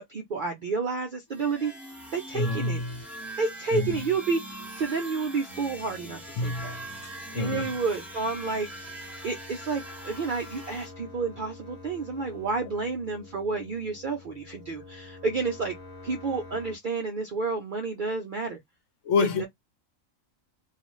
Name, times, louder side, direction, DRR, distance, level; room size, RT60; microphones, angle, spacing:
voice 1, 0.0-1.7 2.1-2.8 3.4-6.8 7.4-8.9 9.2-15.7 16.0-18.6 19.2-19.5, right 4 dB, 60° right, 0.5 m, -30 dB
sound 1, 1.3-10.9, right 1 dB, ahead, 0.8 m, -42 dB
voice 2, 2.3-3.0 3.7-4.0 6.4-7.8 19.0-19.5, left 4 dB, 65° left, 1.0 m, -28 dB
sound 2, 5.5-16.8, left 3 dB, 40° left, 0.7 m, -48 dB
2.4 x 2.3 x 3.0 m
omnidirectional pair, 1.4 m